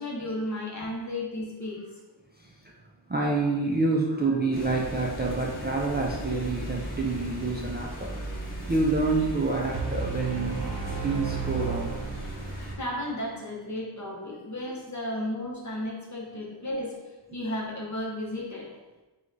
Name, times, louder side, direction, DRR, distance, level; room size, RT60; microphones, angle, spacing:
voice 1, 0.0-1.8 12.8-16.9 17.3-18.7, left 1 dB, 40° left, -4 dB, 1.1 m, -33 dB
voice 2, 3.1-10.6 11.0-11.9, right 3 dB, 25° right, -2 dB, 0.4 m, -28 dB
sound 1, 4.5-12.7, right 1 dB, 20° left, 1.5 m, -37 dB
sound 2, 9.7-12.8, right 6 dB, 70° right, 0.8 m, -33 dB
4.7 x 2.4 x 3.9 m, 1.1 s
wide cardioid pair, 100°, 44 cm